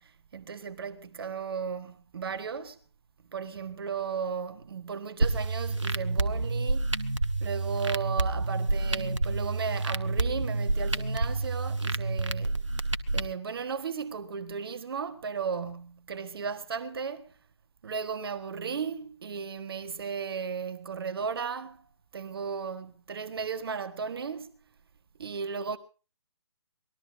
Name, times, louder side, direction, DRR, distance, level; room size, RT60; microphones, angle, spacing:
voice 1, 0.0-2.8 3.3-6.9 7.4-12.5 13.1-17.3 17.8-21.9 22.1-24.5 25.2-25.8, right 6 dB, 55° right, 1.4 m, -35 dB
sound 1, 5.2-13.2, right 2 dB, 90° right, 1.4 m, -29 dB
24.5 x 20.0 x 2.7 m
figure-of-eight pair, 145°, 15 cm